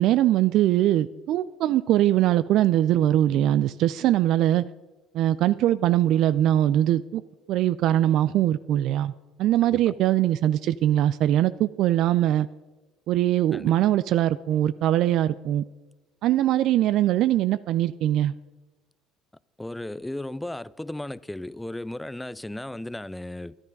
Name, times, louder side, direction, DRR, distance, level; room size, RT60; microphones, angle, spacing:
voice 1, 0.0-4.6 5.1-7.2 7.5-9.1 9.4-12.5 13.1-15.6 16.2-18.3, right 12 dB, 65° right, 0.3 m, -22 dB
voice 2, 9.6-10.0 13.5-13.7 19.6-23.5, left 1 dB, 10° left, 0.4 m, -35 dB
11.5 x 10.5 x 5.3 m
hypercardioid pair, 65°, 0 cm